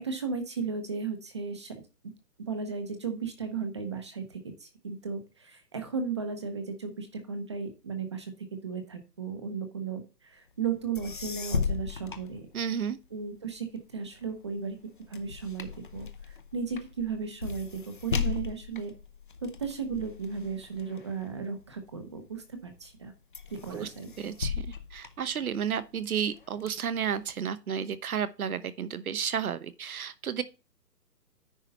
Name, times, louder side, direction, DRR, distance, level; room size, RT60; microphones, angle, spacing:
voice 1, 0.0-1.7 2.0-2.1 2.4-12.4 13.1-13.7 13.9-14.8 15.1-18.9 19.6-23.1 23.5-24.1, right 5 dB, 20° right, 0.8 m, -35 dB
sound 1, 10.7-10.8 10.9-13.1 13.5-22.2 22.7-23.1 23.3-25.8 26.3-27.3, left 6 dB, 35° left, 0.6 m, -37 dB
voice 2, 12.5-13.0 23.7-23.9 24.2-30.4, right 8 dB, 60° right, 1.1 m, -32 dB
9.9 x 4.4 x 5.4 m
hypercardioid pair, 170°, 48 cm